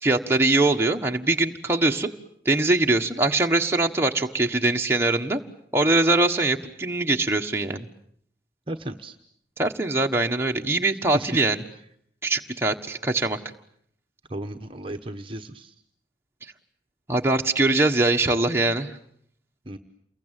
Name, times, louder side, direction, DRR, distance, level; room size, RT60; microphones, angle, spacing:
voice 1, 0.0-2.1 2.4-5.4 5.7-7.9 9.6-11.6 12.2-13.4 17.1-18.9, right 2 dB, 15° right, 2 dB, 1.4 m, -22 dB
voice 2, 8.7-9.1 11.1-11.3 14.3-15.7 19.7-19.8, right 1 dB, 30° right, 5 dB, 1.2 m, -34 dB
29.0 x 22.5 x 9.1 m, 0.68 s
head